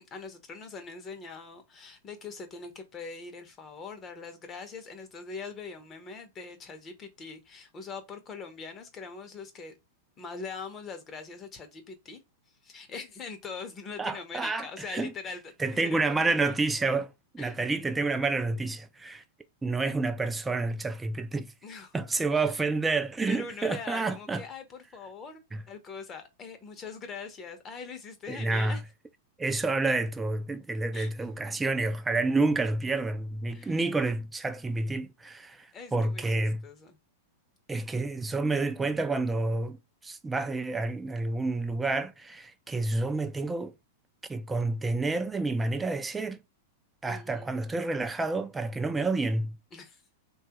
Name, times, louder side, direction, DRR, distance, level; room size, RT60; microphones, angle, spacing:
voice 1, 0.0-9.8 10.2-12.2 12.6-16.5 17.4-17.6 21.6-21.9 22.3-22.5 23.3-25.4 25.7-28.8 30.9-31.3 33.5-33.8 35.7-37.0 47.1-47.5 49.7-50.0, left 4 dB, 30° left, 0.8 m, -42 dB
voice 2, 14.0-15.1 15.6-19.2 19.6-21.5 21.9-24.4 25.5-25.6 28.3-28.8 29.4-36.6 37.7-39.8 40.0-43.7 44.3-46.4 47.0-49.6, right 3 dB, 10° right, 0.4 m, -29 dB
3.0 x 2.3 x 2.9 m
hypercardioid pair, 110°, 0 cm